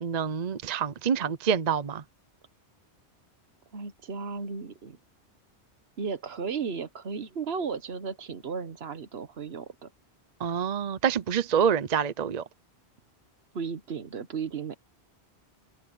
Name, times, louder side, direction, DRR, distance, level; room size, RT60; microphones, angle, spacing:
voice 1, 0.0-2.0 10.4-12.4, right 7 dB, 45° right, 0.7 m, -27 dB
voice 2, 3.7-5.0 6.0-9.9 13.5-14.8, right 5 dB, 70° right, 1.3 m, -35 dB
open air
omnidirectional pair, 1.1 m